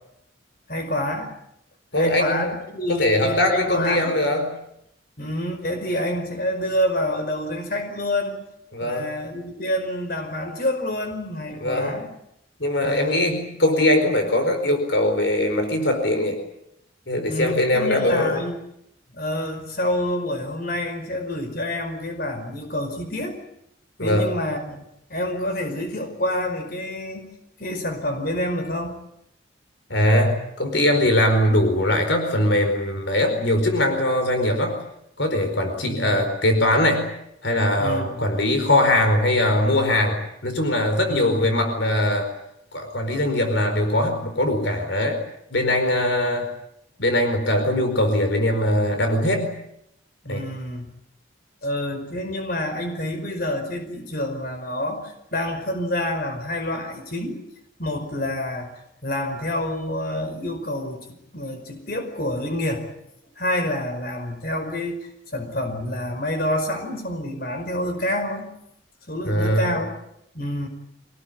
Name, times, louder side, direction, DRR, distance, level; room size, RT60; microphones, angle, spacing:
voice 1, 0.7-1.3 1.9-4.1 5.2-8.4 8.8-12.1 12.8-13.4 17.3-18.6 19.1-23.4 24.0-24.8 25.1-27.3 27.6-29.0 35.9-36.3 37.8-38.3 41.1-41.5 50.2-50.9 51.6-57.4 57.8-62.9 63.4-68.5 69.1-70.0 70.3-70.7, left 1 dB, 50° left, 6 dB, 5.1 m, -28 dB
voice 2, 1.9-2.5 2.9-4.5 8.7-9.1 11.6-11.9 12.6-16.4 17.1-18.4 24.0-24.3 29.9-34.8 35.2-37.1 37.4-42.3 42.7-45.2 45.5-46.5 47.0-49.5 50.3-50.4 69.2-69.7, left 1 dB, 70° left, 6 dB, 4.7 m, -21 dB
26.0 x 19.0 x 9.8 m, 0.78 s
head